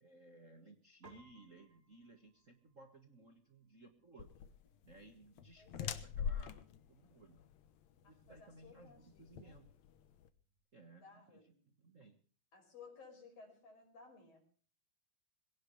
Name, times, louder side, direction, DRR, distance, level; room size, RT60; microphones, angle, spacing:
voice 1, 0.0-4.3 4.8-7.4 8.0-9.7 10.7-11.4 11.7-12.2, right 2 dB, 60° right, 3 dB, 0.8 m, -60 dB
Piano, 1.0-10.6, right 2 dB, 20° right, 5.1 m, -70 dB
sound 1, 4.2-10.3, left 7 dB, 65° left, 1.9 m, -44 dB
voice 2, 8.3-9.6 10.9-11.6 12.5-14.4, left 5 dB, 40° left, 3 dB, 6.5 m, -58 dB
22.0 x 17.5 x 3.3 m, 0.41 s
omnidirectional pair, 4.2 m